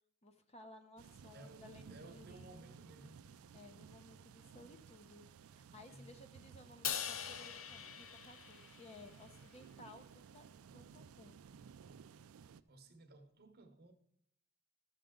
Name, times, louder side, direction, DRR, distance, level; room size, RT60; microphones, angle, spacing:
voice 1, 0.2-2.9 3.5-10.5 10.7-11.4, left 2 dB, 30° left, 0.8 m, -58 dB
sound 1, 1.0-12.6, right 6 dB, 75° right, 0.4 m, -58 dB
voice 2, 1.3-3.3 5.9-6.2 9.2-9.5 12.7-13.9, right 2 dB, 45° right, 1.0 m, -58 dB
Crash cymbal, 6.8-9.2, left 9 dB, 65° left, 0.5 m, -42 dB
13.0 x 6.6 x 3.7 m
head